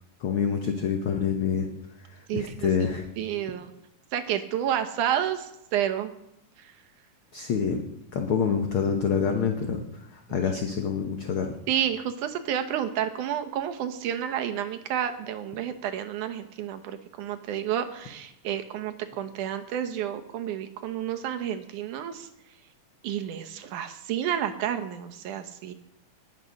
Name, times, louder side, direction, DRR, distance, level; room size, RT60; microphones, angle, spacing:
voice 1, 0.2-1.7 2.1-3.1 7.3-7.8 8.1-9.8 10.1-11.6, left 6 dB, 65° left, 4 dB, 1.3 m, -27 dB
voice 2, 2.3-2.7 3.2-3.7 4.1-6.1 6.6-6.7 10.3-10.5 11.7-22.3 23.0-25.7, right 10 dB, 75° right, 8 dB, 2.3 m, -30 dB
19.5 x 7.0 x 6.4 m, 0.80 s
omnidirectional pair, 3.7 m